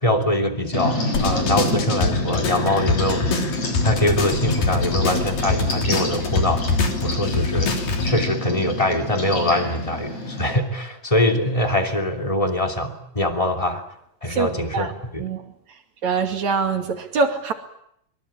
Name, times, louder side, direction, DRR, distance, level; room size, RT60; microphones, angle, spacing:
voice 1, 0.0-3.3 3.8-6.6 7.0-13.8 14.2-15.2, left 1 dB, 10° left, 2.6 m, -23 dB
sound 1, 0.7-10.5, left 1 dB, 55° left, 7.4 m, -28 dB
sound 2, 1.1-8.1, left 3 dB, 80° left, 5.0 m, -25 dB
voice 2, 16.0-17.5, right 4 dB, 55° right, 3.6 m, -23 dB
25.0 x 24.0 x 8.9 m
omnidirectional pair, 3.9 m